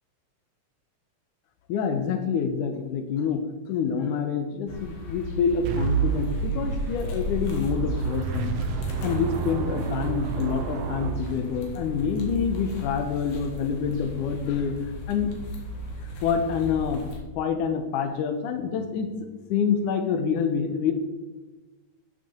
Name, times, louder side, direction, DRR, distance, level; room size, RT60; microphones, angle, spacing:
voice 1, 1.7-8.5 9.0-15.3 16.0-17.0 17.4-20.9, left 6 dB, 85° left, 7 dB, 2.3 m, -27 dB
sound 1, 4.7-17.2, left 1 dB, 60° left, 2.6 m, -36 dB
sound 2, 5.6-11.8, right 6 dB, 70° right, 1.6 m, -30 dB
12.5 x 6.4 x 4.3 m, 1.2 s
omnidirectional pair, 3.6 m